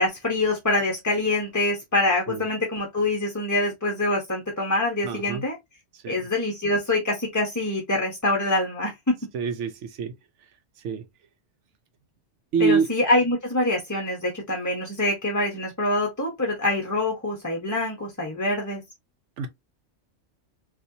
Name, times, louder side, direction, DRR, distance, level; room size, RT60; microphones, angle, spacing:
voice 1, 0.0-5.6 6.1-8.9 12.6-18.8, left 2 dB, 20° left, 0.7 m, -25 dB
voice 2, 5.0-5.4 6.0-6.2 9.3-10.1 10.8-11.0 12.5-12.9 19.4-19.5, right 6 dB, 75° right, 0.9 m, -25 dB
4.0 x 2.5 x 2.6 m
omnidirectional pair, 1.3 m